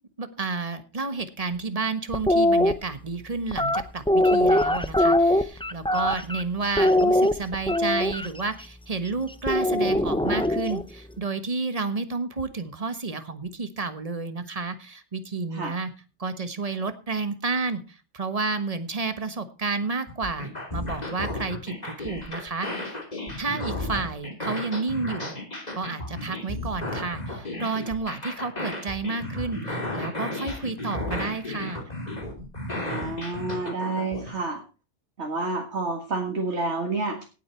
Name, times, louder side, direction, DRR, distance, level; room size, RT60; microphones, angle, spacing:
voice 1, 0.2-15.9 16.2-23.0 23.4-25.4 25.8-31.9, right 4 dB, 30° right, 11 dB, 1.3 m, -31 dB
sound 1, 2.1-2.7 3.5-6.4 6.8-8.3 9.5-10.8, left 1 dB, 5° left, 0.6 m, -21 dB
sound 2, 20.1-34.3, left 1 dB, 35° left, 3.0 m, -33 dB
voice 2, 32.8-34.6 35.2-37.2, right 3 dB, 65° right, 2 dB, 2.0 m, -29 dB
17.5 x 8.3 x 4.5 m, 0.33 s
omnidirectional pair, 1.2 m